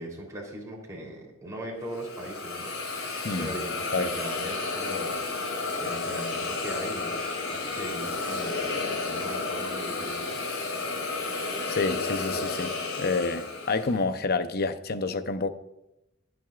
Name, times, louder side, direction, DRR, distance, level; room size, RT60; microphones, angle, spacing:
voice 1, 0.0-2.7 3.4-5.5 5.8-10.4, right 1 dB, 15° right, 3.4 m, -39 dB
Hiss, 1.9-14.0, left 3 dB, 65° left, 3.6 m, -32 dB
voice 2, 11.7-12.7 13.0-15.5, left 3 dB, 45° left, 0.7 m, -28 dB
23.0 x 7.8 x 2.5 m
head